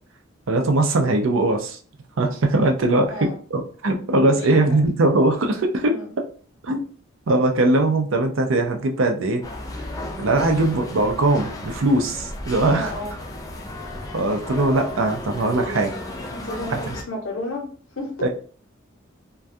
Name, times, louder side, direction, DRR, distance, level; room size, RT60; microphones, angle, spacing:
voice 1, 0.5-1.8 2.2-6.2 6.6-6.8 7.3-9.4 10.2-12.9 14.1-16.0 16.7-17.0 18.2-18.3, right 2 dB, 75° right, 4 dB, 0.5 m, -20 dB
voice 2, 4.4-4.8 5.8-6.0 12.7-13.1 16.3-17.7 18.0-18.3, left 1 dB, 80° left, 2 dB, 0.8 m, -32 dB
sound 1, 9.4-17.0, left 1 dB, 15° left, 0.4 m, -34 dB
2.3 x 2.2 x 2.6 m, 0.42 s
head